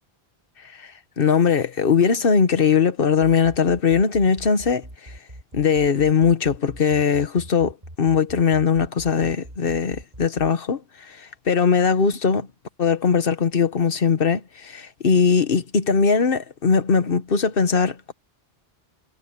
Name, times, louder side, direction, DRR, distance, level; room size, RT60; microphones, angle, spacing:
voice 1, 0.7-5.1 5.5-12.5 12.8-18.1, left 6 dB, 60° left, 1.3 m, -20 dB
sound 1, 3.4-10.5, right 1 dB, 40° right, 5.7 m, -41 dB
omnidirectional pair, 1.0 m